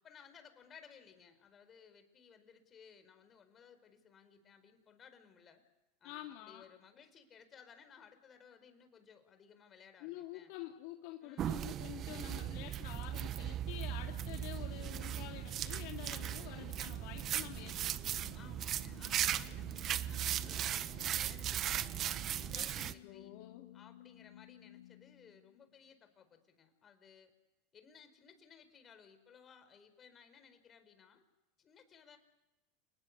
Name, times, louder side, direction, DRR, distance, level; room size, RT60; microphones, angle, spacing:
voice 1, 0.0-5.6 6.0-10.5 11.2-11.7 16.2-16.7 18.3-21.9 22.3-23.3 23.7-27.3 27.7-31.2 31.6-32.2, left 7 dB, 30° left, 9 dB, 4.7 m, -60 dB
voice 2, 6.0-6.6 10.0-18.5 22.5-23.7, left 14 dB, 60° left, 2 dB, 2.7 m, -49 dB
sound 1, 11.4-22.9, right 11 dB, 40° right, 1.1 m, -38 dB
sound 2, 13.8-25.9, left 13 dB, 85° left, 1.4 m, -56 dB
29.0 x 19.5 x 8.3 m, 1.0 s
hypercardioid pair, 95°, 0 cm